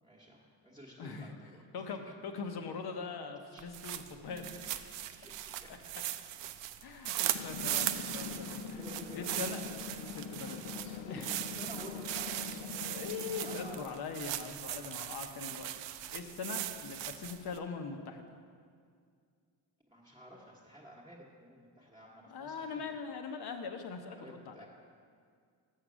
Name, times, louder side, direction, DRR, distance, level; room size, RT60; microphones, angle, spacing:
voice 1, 0.0-2.0 3.5-3.6 4.2-5.7 7.1-7.5 8.8-9.4 10.9-13.2 13.4-14.0 19.9-22.9 24.1-24.7, equal, 10° right, -6 dB, 1.1 m, -52 dB
voice 2, 1.0-1.4 1.7-4.5 5.7-5.8 6.8-8.9 9.1-11.4 12.9-15.7 15.9-18.4 22.3-24.7, left 5 dB, 60° left, 6 dB, 0.9 m, -42 dB
sound 1, 3.6-17.6, right 13 dB, 75° right, 0.5 m, -39 dB
sound 2, 7.3-13.8, left 6 dB, 80° left, 0.6 m, -43 dB
6.6 x 6.6 x 6.1 m, 2.1 s
cardioid pair, 95°, 44 cm